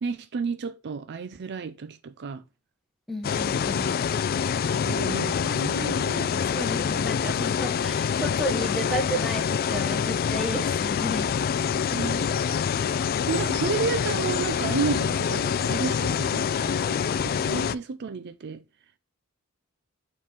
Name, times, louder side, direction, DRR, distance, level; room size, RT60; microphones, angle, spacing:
voice 1, 0.0-2.4 4.6-6.4 11.9-12.3 13.3-18.6, right 5 dB, 50° right, 0.4 m, -32 dB
voice 2, 3.1-3.9 6.4-11.3, equal, ahead, 1.3 m, -32 dB
sound 1, 3.2-17.7, left 7 dB, 45° left, 0.3 m, -26 dB
7.3 x 3.7 x 4.4 m
head